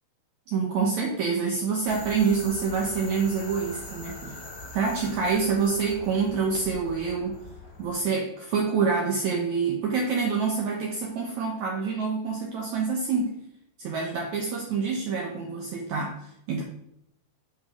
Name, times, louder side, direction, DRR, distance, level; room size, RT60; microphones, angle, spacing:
voice 1, 0.5-4.4 4.7-7.4 7.8-13.4 13.8-16.6, right 5 dB, 75° right, 0 dB, 1.8 m, -27 dB
sound 1, 1.9-7.9, left 2 dB, 35° left, 1.9 m, -42 dB
9.0 x 5.3 x 4.9 m, 0.79 s
omnidirectional pair, 4.6 m